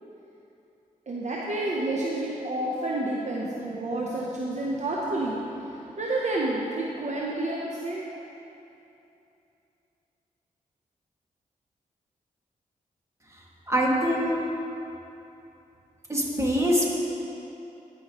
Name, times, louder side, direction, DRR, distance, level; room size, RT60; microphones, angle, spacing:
voice 1, 1.1-5.4 5.7-8.1, right 2 dB, 50° right, -4 dB, 0.9 m, -29 dB
voice 2, 13.7-14.4 16.1-16.9, equal, 20° right, -4 dB, 2.0 m, -23 dB
15.0 x 5.5 x 3.1 m, 2.9 s
cardioid pair, 55°, 15 cm